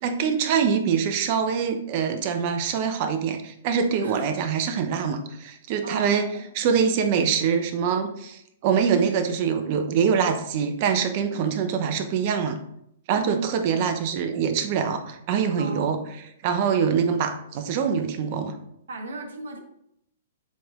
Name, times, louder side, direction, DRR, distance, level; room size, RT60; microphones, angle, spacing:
voice 1, 0.0-6.3 6.6-12.6 13.1-16.0 16.4-18.5, right 7 dB, 45° right, 7 dB, 0.8 m, -24 dB
voice 2, 4.0-4.4 5.8-6.4 11.3-11.5 13.1-13.9 15.6-16.0 18.9-19.6, right 2 dB, 75° right, 3 dB, 1.3 m, -36 dB
7.6 x 3.5 x 3.7 m, 0.76 s
hypercardioid pair, 125°, 0 cm